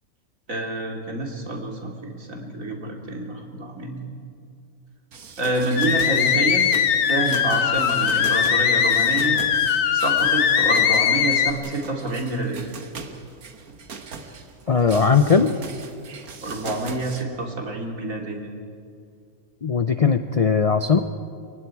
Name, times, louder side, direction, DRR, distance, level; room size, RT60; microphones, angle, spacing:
voice 1, 0.5-4.0 5.4-6.7 7.1-9.4 9.9-12.6 16.4-18.5, right 2 dB, 65° right, 1 dB, 3.1 m, -27 dB
sound 1, 5.1-17.2, right 5 dB, 85° right, 1.8 m, -40 dB
sound 2, 5.8-11.5, left 8 dB, 70° left, 1.3 m, -20 dB
voice 2, 14.7-15.5 19.6-21.0, left 5 dB, 50° left, 9 dB, 0.4 m, -18 dB
28.5 x 23.5 x 4.7 m, 2.3 s
omnidirectional pair, 1.5 m